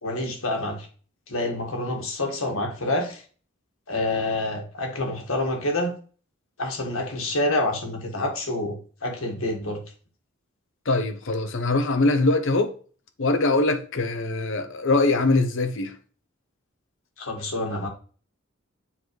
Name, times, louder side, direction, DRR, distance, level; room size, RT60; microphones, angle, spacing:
voice 1, 0.0-0.9 1.3-3.2 3.9-5.9 6.6-9.8 17.2-17.9, left 1 dB, 85° left, 1.8 m, -27 dB
voice 2, 10.9-12.7 13.2-15.9, left 2 dB, 65° left, 0.9 m, -22 dB
7.4 x 4.1 x 3.1 m
head